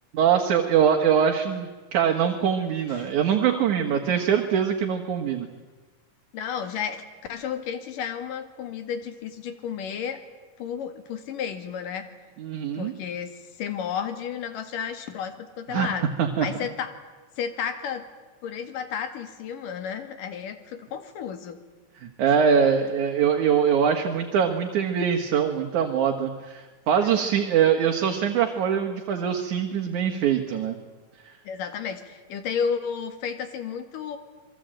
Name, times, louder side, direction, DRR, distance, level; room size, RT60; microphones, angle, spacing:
voice 1, 0.1-5.5 12.4-12.9 15.7-16.5 22.0-30.8, right 7 dB, 70° right, 3 dB, 3.0 m, -23 dB
voice 2, 6.3-10.2 10.6-12.0 12.7-16.1 16.4-16.9 17.4-18.0 18.4-21.6 22.3-22.4 27.0-27.1 31.5-34.2, left 7 dB, 90° left, 9 dB, 3.7 m, -32 dB
27.5 x 22.0 x 9.0 m, 1.3 s
omnidirectional pair, 3.7 m